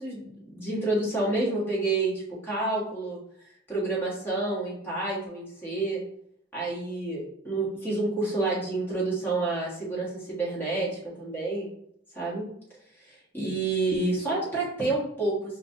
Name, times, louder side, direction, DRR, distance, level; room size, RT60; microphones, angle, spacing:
voice 1, 0.0-2.1 2.4-3.2 3.7-6.0 6.5-10.9 11.2-11.7 12.1-12.4 13.1-15.3, right 2 dB, 10° left, -6 dB, 1.4 m, -29 dB
5.1 x 2.4 x 2.7 m, 0.70 s
head